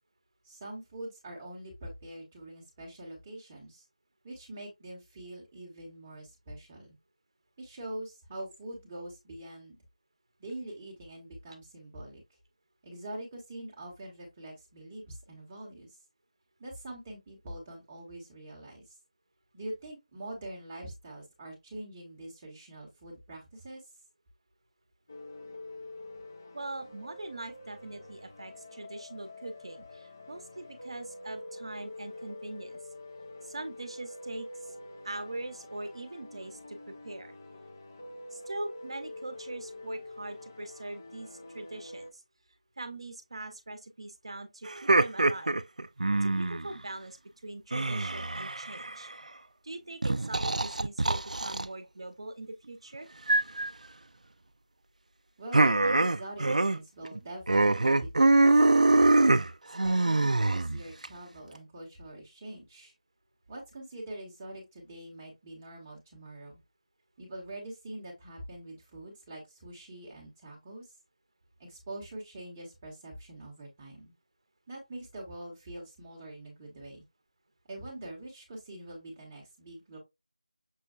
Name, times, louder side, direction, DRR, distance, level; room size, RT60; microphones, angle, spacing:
voice 1, 0.4-3.8 4.2-7.0 7.6-9.8 10.4-12.2 12.8-15.9 16.6-19.0 19.5-23.8 55.4-59.2 59.8-62.9 63.5-66.6 67.2-70.9 71.6-74.1 74.7-77.0 77.7-80.0, right 1 dB, 10° right, 0.9 m, -44 dB
sound 1, 25.1-42.1, left 1 dB, 25° left, 0.4 m, -46 dB
voice 2, 26.5-32.8 33.4-34.8 35.0-37.4 38.3-42.2 42.8-45.5 46.2-47.2 47.4-49.1 49.6-53.1, right 2 dB, 45° right, 0.7 m, -42 dB
sound 2, 44.7-46.7 47.7-49.1 50.0-51.6 53.3-53.7 55.5-56.8 57.0-57.2 57.5-61.1, right 2 dB, 80° right, 0.3 m, -24 dB
6.2 x 2.2 x 2.3 m
figure-of-eight pair, 175°, 4 cm